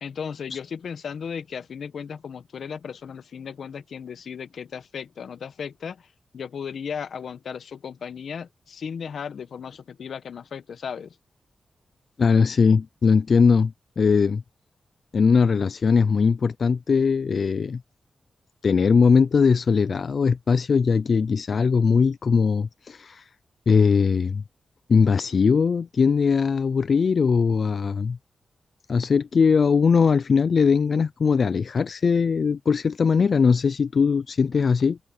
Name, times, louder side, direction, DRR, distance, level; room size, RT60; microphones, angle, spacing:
voice 1, 0.0-6.1 6.3-11.2, left 7 dB, 75° left, 1.2 m, -35 dB
voice 2, 12.2-14.4 15.1-17.8 18.6-23.3 23.7-24.4 24.9-28.2 28.9-35.0, left 5 dB, 60° left, 0.4 m, -20 dB
cardioid pair, 85°, 0 cm